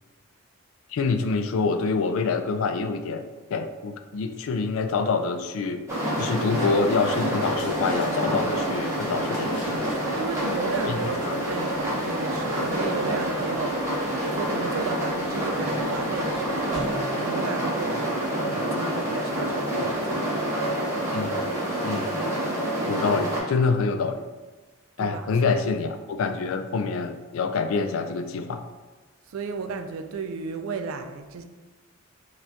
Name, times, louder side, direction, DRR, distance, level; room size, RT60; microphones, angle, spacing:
voice 1, 0.9-3.3 3.5-5.8 6.2-9.9 10.9-11.0 11.3-11.4 21.1-21.4 21.8-22.2 22.9-24.2 25.0-28.6, left 4 dB, 70° left, 8 dB, 0.3 m, -26 dB
sound 1, 5.9-23.4, right 1 dB, 15° right, 0.7 m, -27 dB
sound 2, 6.5-16.9, equal, 35° left, 1.3 m, -46 dB
voice 2, 10.1-14.0 14.3-20.2 25.0-25.7 29.3-31.4, right 5 dB, 75° right, 7 dB, 0.3 m, -34 dB
4.3 x 2.4 x 2.7 m, 1.3 s
head